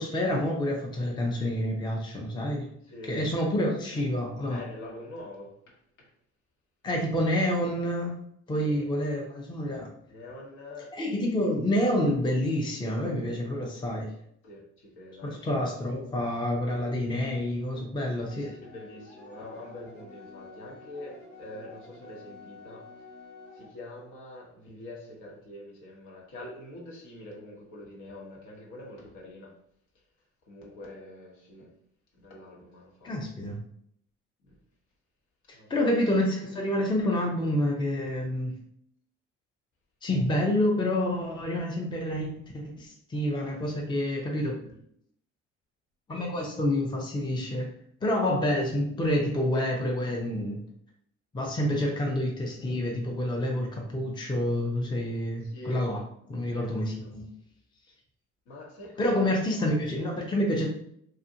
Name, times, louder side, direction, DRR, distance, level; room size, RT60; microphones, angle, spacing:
voice 1, 0.0-2.7 3.1-4.6 6.8-8.2 8.5-9.9 10.9-14.1 15.2-18.5 33.0-33.6 35.5-38.5 40.0-44.6 46.1-47.7 48.0-50.6 51.3-56.0 56.3-57.3 59.0-60.7, left 1 dB, 15° left, 0.6 m, -28 dB
voice 2, 2.8-3.2 4.5-6.1 8.5-8.9 10.1-11.0 13.3-13.5 14.4-15.5 18.3-23.1 23.5-29.6 30.4-31.7 32.1-33.1 34.4-34.6 35.5-35.7 44.5-44.8 55.4-55.9 56.5-57.1 58.5-59.3, left 1 dB, 60° left, 1.0 m, -45 dB
sound 1, 18.2-23.7, left 3 dB, 85° left, 0.7 m, -49 dB
2.6 x 2.4 x 2.7 m
hypercardioid pair, 55°, 36 cm